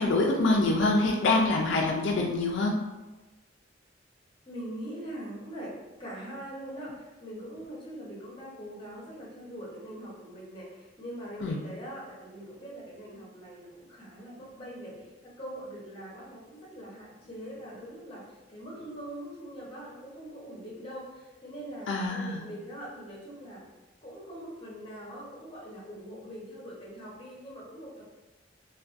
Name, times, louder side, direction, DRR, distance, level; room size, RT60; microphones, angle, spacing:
voice 1, 0.0-2.7 11.4-11.6 21.9-22.4, left 2 dB, 80° left, 0 dB, 0.3 m, -25 dB
voice 2, 4.5-5.7 6.0-23.6 24.0-28.0, right 1 dB, 30° left, -5 dB, 0.8 m, -42 dB
2.3 x 2.3 x 2.5 m, 1.1 s
head